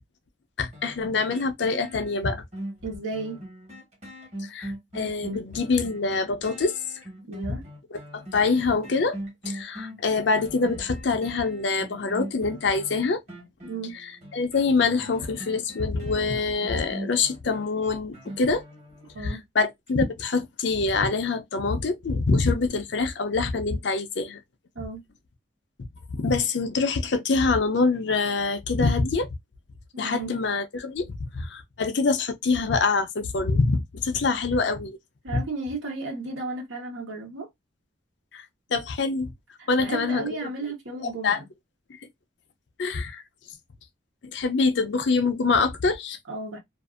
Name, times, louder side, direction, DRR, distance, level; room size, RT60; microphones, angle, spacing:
voice 1, 0.6-2.4 4.4-6.7 8.1-9.2 9.5-13.2 14.3-18.6 19.2-24.4 26.1-29.3 30.0-35.0 35.3-35.4 38.3-38.4 38.7-39.3 39.7-40.4 41.2-41.4 42.8-43.2 44.2-46.2, left 4 dB, 65° left, 0.5 m, -25 dB
sound 1, 0.7-19.4 19.9-20.0, equal, 35° right, 1.1 m, -41 dB
voice 2, 2.8-3.4 7.3-7.6 13.6-14.0 19.1-19.4 24.7-25.0 29.9-30.4 35.2-37.5 39.6-41.5 46.3-46.6, right 3 dB, 80° right, 1.0 m, -34 dB
2.5 x 2.5 x 2.4 m
head